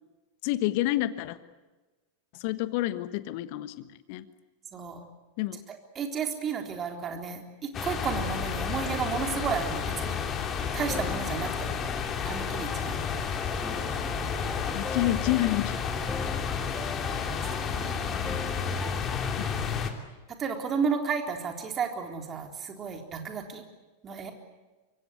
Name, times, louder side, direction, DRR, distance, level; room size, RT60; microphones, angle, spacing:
voice 1, 0.4-1.4 2.4-4.2 5.4-5.6 14.6-15.7, left 16 dB, 45° left, 14 dB, 1.3 m, -28 dB
voice 2, 4.7-5.0 5.7-10.3 10.7-11.8 12.2-13.0 17.1-18.4 20.4-23.6 24.0-24.3, right 6 dB, 25° right, 4 dB, 3.7 m, -33 dB
sound 1, 7.7-19.9, left 6 dB, 25° left, 2.9 m, -31 dB
sound 2, 10.9-19.8, left 2 dB, 10° left, 1.5 m, -42 dB
25.5 x 23.5 x 8.3 m, 1.2 s
figure-of-eight pair, 90°, 0 cm